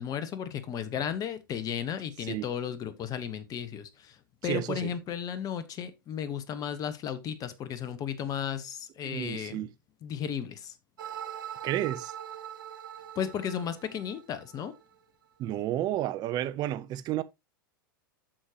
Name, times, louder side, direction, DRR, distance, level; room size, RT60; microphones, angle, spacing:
voice 1, 0.0-4.2 4.4-9.7 10.0-10.7 13.1-14.7, left 8 dB, 30° left, 1.2 m, -34 dB
voice 2, 4.4-4.9 9.0-9.7 11.6-12.1 15.4-17.2, right 13 dB, 35° right, 0.6 m, -31 dB
sound 1, 11.0-15.0, right 10 dB, 70° right, 0.9 m, -42 dB
8.8 x 6.5 x 2.9 m
hypercardioid pair, 100°, 12 cm